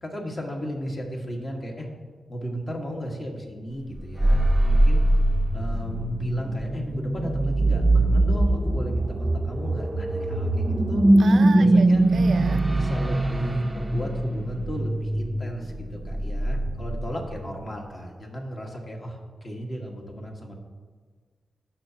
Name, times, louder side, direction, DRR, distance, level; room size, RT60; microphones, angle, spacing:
voice 1, 0.0-1.9 2.3-5.0 5.5-11.0 11.5-12.0 12.7-20.5, equal, 40° left, 0 dB, 1.6 m, -35 dB
sound 1, 4.0-17.4, right 1 dB, 15° right, 0.6 m, -22 dB
voice 2, 11.2-12.6, right 5 dB, 65° right, 11 dB, 0.4 m, -33 dB
17.5 x 6.0 x 2.9 m, 1.5 s
wide cardioid pair, 110°, 0 cm